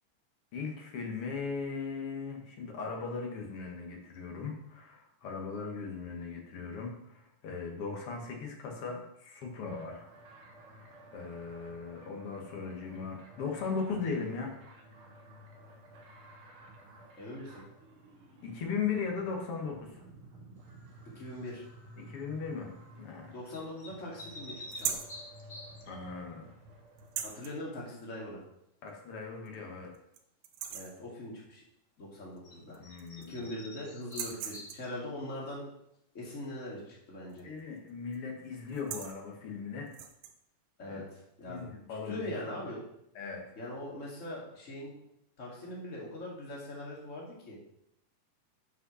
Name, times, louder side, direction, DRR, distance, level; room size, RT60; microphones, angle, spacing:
voice 1, 0.5-10.0 10.8-14.5 18.4-20.0 22.0-23.3 25.9-26.5 28.8-29.9 32.8-33.4 37.4-39.9 40.8-41.0 41.4-42.4 43.2-43.4, left 5 dB, 50° left, 1 dB, 2.1 m, -38 dB
sound 1, 9.6-27.2, right 1 dB, 65° right, 1.4 m, -54 dB
voice 2, 17.2-17.6 21.1-21.6 23.3-25.0 27.2-28.4 30.7-31.6 32.0-32.8 33.3-35.6 36.1-37.5 40.8-41.6 41.9-42.8 43.6-44.9 45.4-47.6, left 1 dB, 25° left, -4 dB, 2.3 m, -41 dB
sound 2, 21.3-21.6 23.4-26.1 32.4-32.5 32.8-35.3, left 1 dB, 80° left, 0.6 m, -48 dB
sound 3, 24.7-25.2 27.0-27.5 28.9-29.0 29.5-29.6 29.9-30.2 30.4-31.0 32.4-32.5 32.7-33.4 34.0-34.9 37.3-37.6 37.9-38.2 38.6-39.2 39.9-40.3, right 9 dB, 85° right, 2.5 m, -39 dB
8.3 x 5.7 x 6.2 m, 0.79 s
omnidirectional pair, 3.9 m